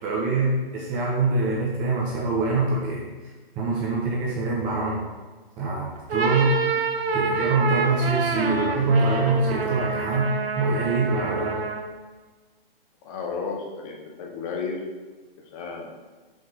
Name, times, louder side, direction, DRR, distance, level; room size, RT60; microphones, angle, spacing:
voice 1, 0.0-5.0 5.6-6.6 7.1-10.3 10.6-11.5, right 3 dB, 25° right, -4 dB, 1.3 m, -24 dB
sound 1, 6.0-12.0, right 4 dB, 80° right, 0.9 m, -27 dB
voice 2, 13.0-14.8 15.5-15.9, left 5 dB, 35° left, 0 dB, 1.3 m, -33 dB
5.7 x 5.5 x 3.7 m, 1.3 s
hypercardioid pair, 130°, 30 cm